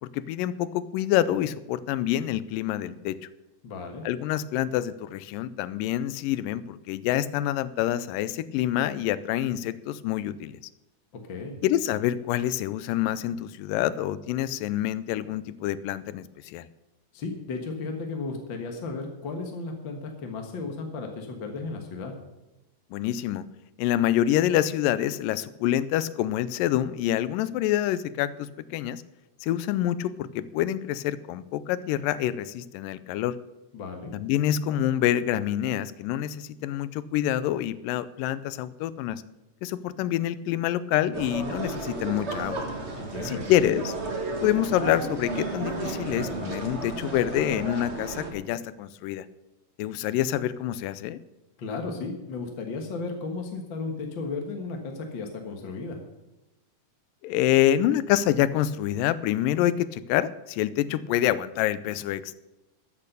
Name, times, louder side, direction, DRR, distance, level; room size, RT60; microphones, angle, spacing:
voice 1, 0.0-3.2 4.0-10.6 11.6-16.7 22.9-23.4 23.8-29.0 29.4-33.4 34.1-39.2 39.6-42.7 43.2-43.9 44.4-49.3 49.8-51.2 57.2-62.3, left 12 dB, 85° left, 16 dB, 2.2 m, -27 dB
voice 2, 3.6-4.0 11.1-11.6 17.1-22.1 33.7-34.1 43.0-43.5 51.6-56.0, left 3 dB, 50° left, 3 dB, 1.6 m, -34 dB
sound 1, 41.1-48.3, right 3 dB, 35° right, 1.0 m, -33 dB
13.5 x 8.6 x 6.8 m, 0.99 s
omnidirectional pair, 3.9 m